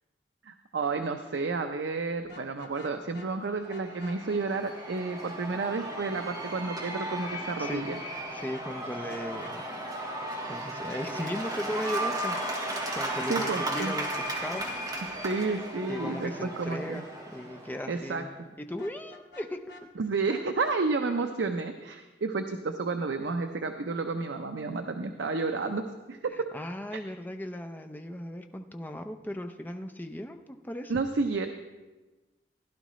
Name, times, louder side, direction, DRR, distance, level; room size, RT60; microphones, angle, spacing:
voice 1, 0.4-8.0 13.3-13.9 15.2-17.0 17.9-18.2 20.0-25.8 26.1-26.5 30.9-31.5, right 3 dB, 80° right, 6 dB, 0.6 m, -31 dB
Vehicle horn car horn honking, 2.2-3.3 3.7-4.2 7.6-8.3 8.5-8.7 9.1-9.5 12.9-13.7 14.0-14.2 14.5-15.0 18.8-19.8 20.3-20.8, left 1 dB, 75° left, 1.2 m, -49 dB
Cheering / Applause / Crowd, 3.4-18.1, right 1 dB, 20° right, 1.7 m, -35 dB
voice 2, 8.3-9.7 10.4-12.4 12.9-14.6 15.9-17.0 17.3-18.3 18.6-19.6 26.3-30.9, left 1 dB, 10° left, 5 dB, 0.6 m, -37 dB
16.0 x 11.0 x 3.1 m, 1.2 s
head